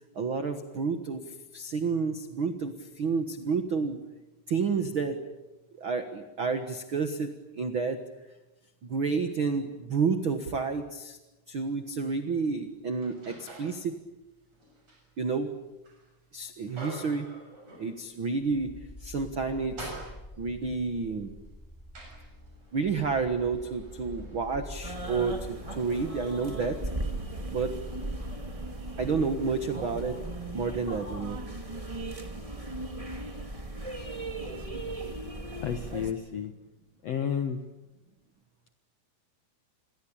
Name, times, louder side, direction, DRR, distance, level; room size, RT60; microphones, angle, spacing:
voice 1, 0.1-4.0 4.5-5.2 5.8-7.3 7.5-8.0 8.8-11.2 11.5-14.0 15.2-15.5 16.3-17.3 17.8-18.7 19.0-20.0 20.4-21.3 22.7-26.8 27.5-27.7 29.0-30.2 30.5-31.4, right 4 dB, 75° right, 8 dB, 1.1 m, -30 dB
sound 1, 12.3-13.8 14.2-18.3 18.7-18.8 19.2-20.6 21.3-29.9, right 2 dB, 40° right, 7.9 m, -49 dB
sound 2, 18.4-25.5, left 1 dB, 5° left, 1.9 m, -46 dB
sound 3, 24.8-36.1, right 1 dB, 15° right, 1.2 m, -37 dB
voice 2, 35.6-36.5 37.0-37.6, left 8 dB, 80° left, 7 dB, 1.4 m, -31 dB
28.0 x 22.5 x 8.7 m, 1.0 s
omnidirectional pair, 4.8 m